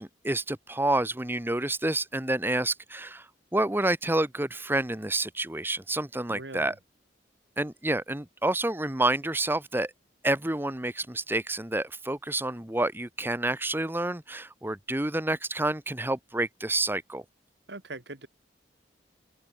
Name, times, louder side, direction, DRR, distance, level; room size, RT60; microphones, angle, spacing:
voice 1, 0.0-6.7 7.6-9.9 10.2-17.2, right 2 dB, 10° right, 1.3 m, -29 dB
voice 2, 6.3-6.8 17.7-18.3, right 2 dB, 70° right, 2.5 m, -41 dB
open air
head